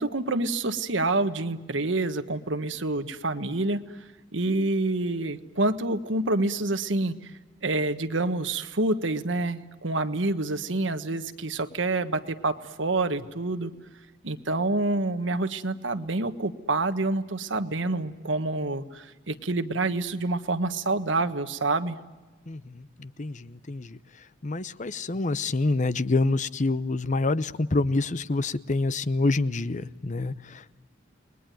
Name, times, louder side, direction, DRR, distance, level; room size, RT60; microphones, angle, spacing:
voice 1, 0.0-3.8 4.3-7.1 7.6-13.7 14.2-22.0, right 2 dB, 85° right, 9 dB, 1.5 m, -27 dB
voice 2, 22.5-24.0 24.4-30.8, left 2 dB, 40° left, 15 dB, 0.8 m, -27 dB
30.0 x 21.5 x 9.2 m, 1.2 s
head